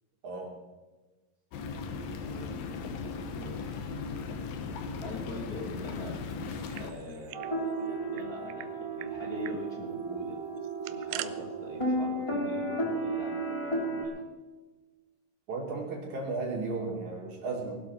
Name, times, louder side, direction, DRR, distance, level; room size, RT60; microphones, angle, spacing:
voice 1, 0.2-0.6 15.5-17.8, right 3 dB, 60° right, -1 dB, 4.1 m, -34 dB
sound 1, 1.5-6.9, left 4 dB, 80° left, 2.9 m, -37 dB
voice 2, 2.2-3.0 3.3-3.9 5.0-6.2 6.8-10.4 10.9-14.2, left 1 dB, 35° left, -3 dB, 1.7 m, -43 dB
sound 2, 6.5-7.5 7.8-7.9 8.2-8.7 9.0-9.1 9.4-9.6 10.6-11.3, right 15 dB, 85° right, 2.3 m, -41 dB
sound 3, 7.3-14.0, right 2 dB, 10° left, 2.3 m, -33 dB
20.0 x 12.0 x 4.5 m, 1.2 s
omnidirectional pair, 3.9 m